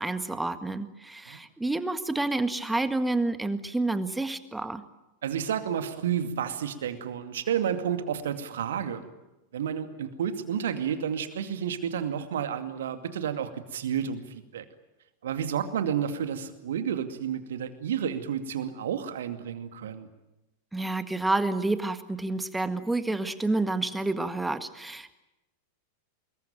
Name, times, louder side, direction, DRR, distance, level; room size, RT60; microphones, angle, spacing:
voice 1, 0.0-4.8 20.7-25.1, right 2 dB, 5° right, 11 dB, 1.7 m, -29 dB
voice 2, 5.2-9.0 9.5-14.6 15.2-20.1, right 8 dB, 60° right, 9 dB, 2.3 m, -31 dB
25.5 x 21.5 x 9.1 m, 1.0 s
figure-of-eight pair, 90°, 0 cm